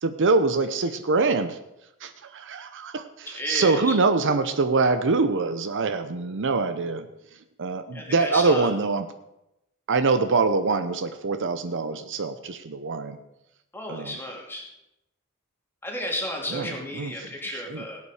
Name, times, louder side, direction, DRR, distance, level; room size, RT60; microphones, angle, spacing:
voice 1, 0.0-1.6 2.0-7.1 7.6-9.1 9.9-13.2 13.9-14.2 16.5-17.8, right 4 dB, 60° right, 10 dB, 0.8 m, -24 dB
voice 2, 3.3-4.0 7.9-8.7 13.7-14.7 15.8-18.0, left 1 dB, 10° left, -1 dB, 2.6 m, -33 dB
17.5 x 8.6 x 4.9 m, 0.88 s
head